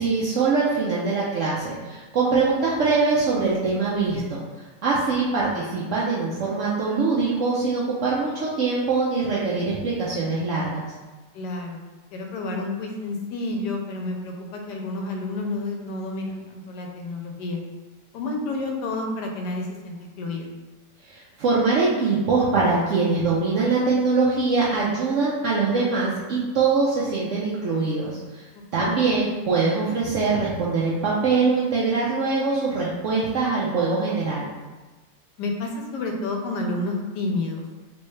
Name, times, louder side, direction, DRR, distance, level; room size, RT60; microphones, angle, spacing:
voice 1, 0.0-4.4 4.8-10.9 21.1-28.5 28.7-34.5, right 4 dB, 75° right, -6 dB, 0.7 m, -23 dB
voice 2, 11.3-11.8 12.1-17.6 18.1-20.5 28.5-28.6 35.4-37.7, left 2 dB, 75° left, 2 dB, 1.2 m, -30 dB
3.3 x 3.0 x 3.1 m, 1.2 s
omnidirectional pair, 1.9 m